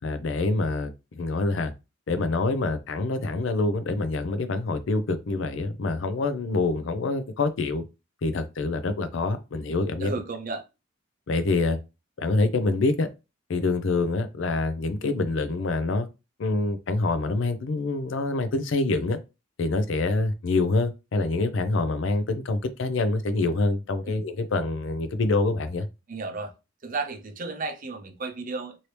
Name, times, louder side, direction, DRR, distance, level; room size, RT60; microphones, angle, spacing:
voice 1, 0.0-1.7 2.1-7.8 8.2-10.1 11.3-11.8 12.2-13.1 13.5-16.1 16.4-19.2 19.6-25.9, left 3 dB, 65° left, 0.5 m, -26 dB
voice 2, 10.0-10.6 24.0-24.2 26.1-26.5 26.8-28.8, right 3 dB, 40° right, 0.6 m, -33 dB
2.9 x 2.7 x 3.2 m
head